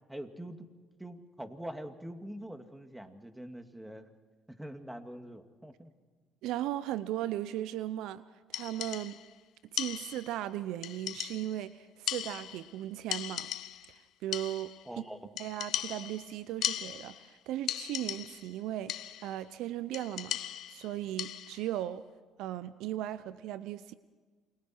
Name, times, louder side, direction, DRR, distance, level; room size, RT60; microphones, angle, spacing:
voice 1, 0.1-0.7 1.0-4.1 4.5-5.9 14.9-15.3, right 1 dB, 10° right, 7 dB, 2.3 m, -44 dB
voice 2, 6.4-8.2 8.5-9.2 9.7-13.5 13.9-14.7 15.4-20.4 20.7-22.0 22.4-23.9, right 13 dB, 75° right, 16 dB, 0.6 m, -37 dB
sound 1, 8.5-9.3 9.8-10.4 10.8-11.7 12.1-12.8 13.1-14.0 14.3-14.9 15.4-17.3 17.7-18.5 18.9-19.4 19.9-21.7, left 12 dB, 65° left, 0.8 m, -38 dB
28.5 x 22.5 x 4.6 m, 1.4 s
hypercardioid pair, 60°, 0 cm